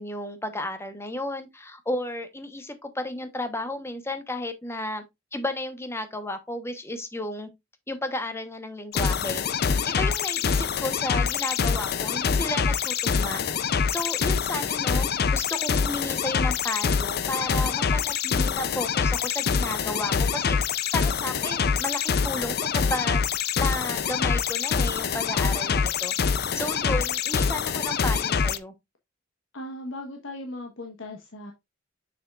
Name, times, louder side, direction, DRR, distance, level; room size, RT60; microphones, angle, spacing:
voice 1, 0.0-5.0 5.3-7.5 7.9-9.4 9.8-13.4 13.9-20.6 20.9-23.3 23.6-28.7, left 1 dB, 15° left, 1.0 m, -33 dB
sound 1, 8.9-28.6, left 6 dB, 55° left, 0.5 m, -25 dB
voice 2, 29.5-31.5, left 1 dB, 80° left, 1.3 m, -37 dB
7.0 x 6.4 x 2.4 m
head